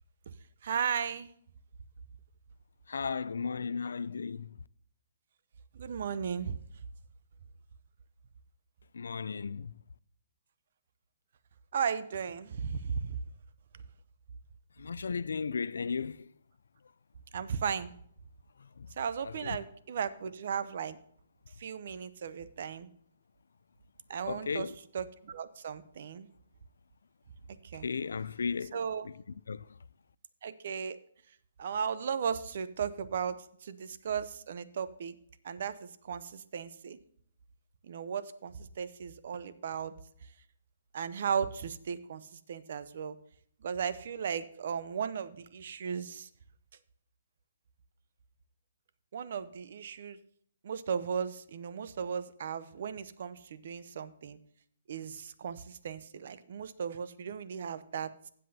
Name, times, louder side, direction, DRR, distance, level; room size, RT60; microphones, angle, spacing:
voice 1, 0.6-1.3 5.7-6.6 11.7-13.2 17.3-17.9 19.0-21.0 21.6-22.9 24.1-26.3 27.6-27.9 28.7-29.1 30.4-31.0 31.6-35.2 35.4-37.0 37.8-39.9 40.9-43.2 43.6-46.3 49.1-50.2 50.6-54.4 54.9-58.3, right 7 dB, 50° right, 0.6 m, -36 dB
voice 2, 2.9-4.5 8.9-9.7 14.8-16.3 18.8-18.9 19.2-19.6 24.3-24.7 27.8-28.8 29.5-29.7, left 5 dB, 90° left, 0.3 m, -35 dB
15.0 x 7.6 x 2.8 m
hypercardioid pair, 170°, 0 cm